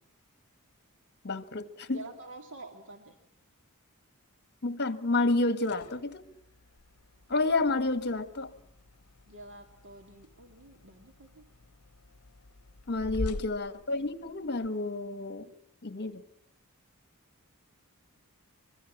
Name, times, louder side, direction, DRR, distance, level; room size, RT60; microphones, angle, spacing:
voice 1, 1.2-2.0 4.6-6.2 7.3-8.5 12.9-15.5 15.8-16.2, left 2 dB, 50° left, 12 dB, 1.6 m, -30 dB
voice 2, 1.9-3.2 9.3-11.4 12.9-13.4, right 2 dB, 60° right, 5 dB, 2.2 m, -48 dB
fridge open and close, 5.6-14.7, left 2 dB, 80° left, 0.8 m, -45 dB
25.0 x 22.0 x 7.2 m, 0.73 s
head